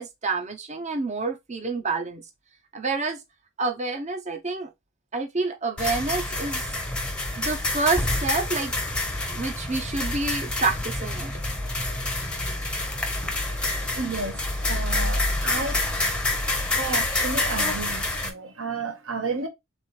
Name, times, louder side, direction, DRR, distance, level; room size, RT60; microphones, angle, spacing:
voice 1, 0.0-2.2 2.7-3.2 3.6-4.7 5.1-6.7 7.4-8.7 9.3-11.3, right 3 dB, 30° right, 0.8 m, -28 dB
sound 1, 5.8-18.3, left 2 dB, 5° left, 0.8 m, -27 dB
voice 2, 13.9-14.4 14.7-15.8 16.7-19.5, right 3 dB, 60° right, 1.1 m, -31 dB
3.7 x 3.4 x 4.2 m
head